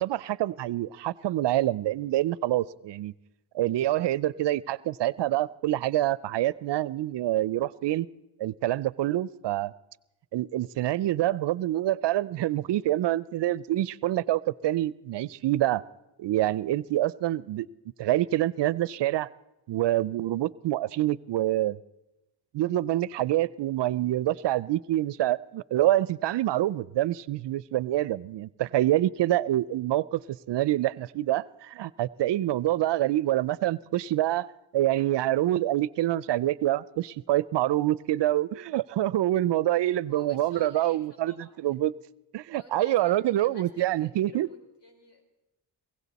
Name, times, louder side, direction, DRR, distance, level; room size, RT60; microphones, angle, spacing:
voice 1, 0.0-3.1 3.5-8.1 8.4-9.7 10.3-15.8 16.2-17.7 18.0-19.3 19.7-21.8 22.5-34.5 34.7-41.3 41.6-41.9 42.3-44.5, right 14 dB, 60° right, 21 dB, 0.5 m, -26 dB
voice 2, 40.1-41.0 41.3-41.8 42.6-45.2, left 3 dB, 60° left, 5 dB, 3.8 m, -52 dB
20.5 x 16.5 x 4.1 m, 0.93 s
cardioid pair, 70°, 47 cm